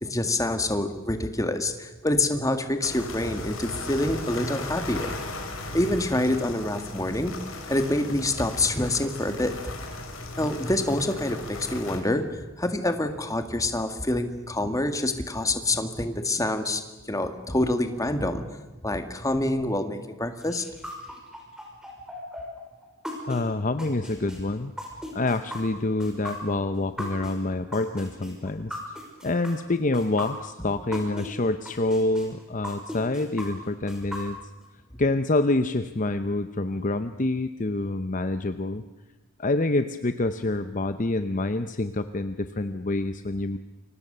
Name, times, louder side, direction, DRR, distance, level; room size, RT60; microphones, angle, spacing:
voice 1, 0.0-5.1 5.7-7.3 7.7-9.7 10.4-16.8 17.1-18.5 18.8-20.6, left 1 dB, 15° left, 7 dB, 1.9 m, -26 dB
sound 1, 2.8-12.0, left 2 dB, 70° left, 4.6 m, -37 dB
sound 2, 20.4-31.3 31.6-34.6, left 1 dB, 5° right, 5.7 m, -37 dB
voice 2, 23.3-24.7 25.1-28.8 29.2-34.4 35.0-38.8 39.4-43.6, left 2 dB, 35° left, 10 dB, 0.8 m, -27 dB
29.0 x 24.0 x 6.8 m, 1.1 s
head